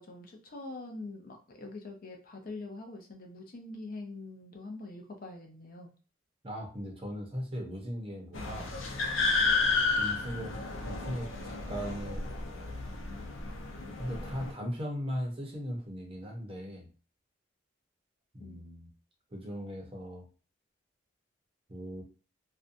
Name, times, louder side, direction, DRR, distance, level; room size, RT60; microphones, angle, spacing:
voice 1, 0.0-5.9 18.4-18.6, left 2 dB, 45° left, 2 dB, 0.5 m, -44 dB
voice 2, 6.4-8.7 10.0-10.6 10.9-12.3 14.0-16.9 18.3-18.9 19.3-20.3 21.7-22.0, equal, 30° right, 0 dB, 0.7 m, -38 dB
sound 1, 8.3-14.5, left 3 dB, 85° left, 0.7 m, -32 dB
2.6 x 2.2 x 2.5 m, 0.37 s
head